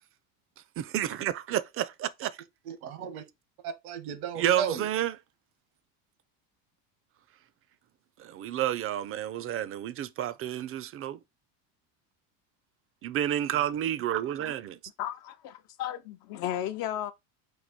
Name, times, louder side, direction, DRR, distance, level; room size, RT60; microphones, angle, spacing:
voice 1, 0.8-2.4 4.4-5.1 8.2-11.2 13.0-14.8, right 11 dB, 35° right, 0.4 m, -30 dB
voice 2, 2.6-3.2 3.6-4.9 14.3-14.5, right 8 dB, 85° right, 1.2 m, -35 dB
voice 3, 15.0-17.1, left 11 dB, 60° left, 0.5 m, -34 dB
4.6 x 2.6 x 4.0 m
supercardioid pair, 105°, 43 cm